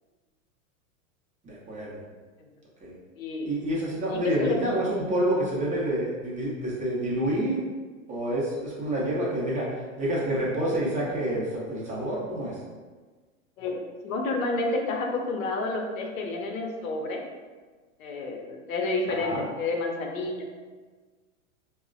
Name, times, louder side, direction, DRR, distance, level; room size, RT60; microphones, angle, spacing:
voice 1, 1.4-2.0 2.8-2.9 3.4-7.6 8.1-12.6 19.2-19.4, right 1 dB, 20° right, -5 dB, 0.6 m, -28 dB
voice 2, 3.2-3.5 4.2-4.6 13.6-17.2 18.0-20.4, left 3 dB, 80° left, 2 dB, 0.6 m, -30 dB
3.0 x 2.1 x 2.5 m, 1.4 s
hypercardioid pair, 105°, 40 cm